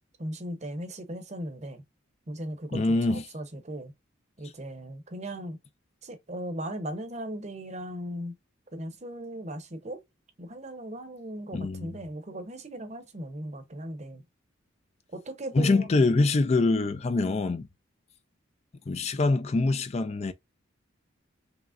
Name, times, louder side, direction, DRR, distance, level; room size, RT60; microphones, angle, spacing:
voice 1, 0.2-1.8 2.3-2.8 3.1-3.9 4.4-5.6 6.0-8.3 8.7-10.0 10.4-14.2 15.1-15.9, right 1 dB, 35° right, 0.8 m, -37 dB
voice 2, 2.7-3.2 11.5-12.0 15.5-17.7 18.9-20.3, left 3 dB, 35° left, 0.3 m, -24 dB
4.9 x 3.2 x 2.5 m
head